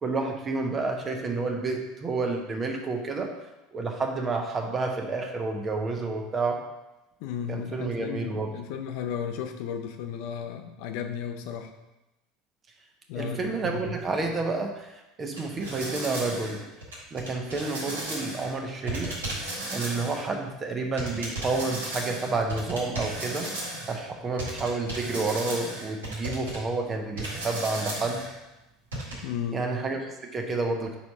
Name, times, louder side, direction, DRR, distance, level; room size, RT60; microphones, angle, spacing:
voice 1, 0.0-3.3 3.7-6.6 7.5-8.5 13.1-16.6 17.1-19.2 19.7-23.5 23.9-28.2 29.5-31.0, right 3 dB, 30° right, 2 dB, 1.1 m, -30 dB
voice 2, 7.2-11.7 13.1-13.9 29.2-29.7, left 8 dB, 65° left, 6 dB, 0.6 m, -34 dB
sound 1, 15.4-18.5 18.9-20.3 21.0-24.0 24.4-26.6 27.2-28.3 28.9-29.1, right 1 dB, 90° right, 2.0 m, -35 dB
4.7 x 4.2 x 5.4 m, 0.98 s
hypercardioid pair, 80°, 0 cm